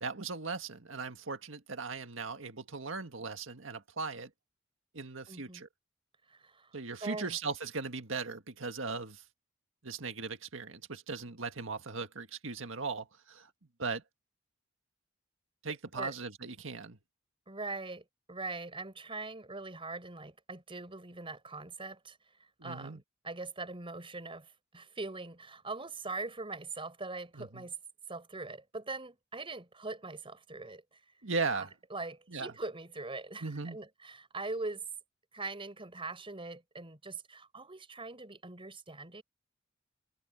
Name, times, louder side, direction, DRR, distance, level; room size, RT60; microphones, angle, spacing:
voice 1, 0.0-4.3 4.9-5.7 6.7-9.2 9.8-13.5 13.8-14.0 15.6-17.0 22.6-23.0 27.4-27.6 31.2-31.7 32.3-32.5 33.4-33.8, right 4 dB, 70° right, 1.9 m, -38 dB
voice 2, 5.3-5.6 6.3-7.4 15.7-16.1 17.5-27.8 28.1-31.0 31.5-34.8 35.3-39.2, right 3 dB, 25° right, 4.8 m, -42 dB
head